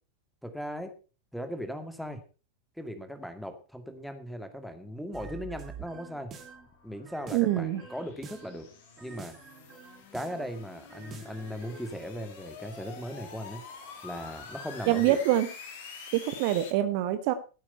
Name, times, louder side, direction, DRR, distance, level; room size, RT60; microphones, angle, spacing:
voice 1, 0.4-0.9 1.3-2.2 2.8-6.3 6.8-8.7 9.0-9.4 10.1-13.6 14.0-15.2, equal, ahead, 8 dB, 2.2 m, -38 dB
sound 1, 5.1-6.7 7.0-8.6 9.0-10.5 10.9-11.9, right 5 dB, 25° right, 2.8 m, -47 dB
sound 2, 5.7-16.7, left 5 dB, 55° left, 3.0 m, -47 dB
voice 2, 7.3-7.8 14.9-15.5 16.1-17.3, right 13 dB, 45° right, 11 dB, 1.2 m, -25 dB
14.5 x 8.8 x 5.6 m, 0.35 s
figure-of-eight pair, 90°, 0 cm